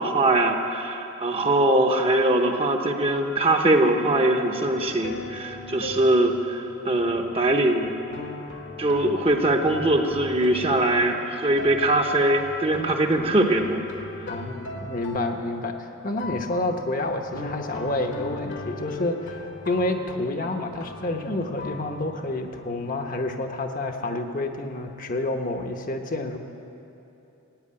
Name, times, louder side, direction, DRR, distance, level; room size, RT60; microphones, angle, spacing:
voice 1, 0.0-7.9 8.8-13.8, right 1 dB, 25° right, 3 dB, 0.8 m, -22 dB
sound 1, 4.5-23.1, left 2 dB, 55° left, 1.2 m, -39 dB
voice 2, 14.3-26.4, left 2 dB, 40° left, 5 dB, 0.9 m, -29 dB
15.0 x 9.2 x 8.7 m, 3.0 s
head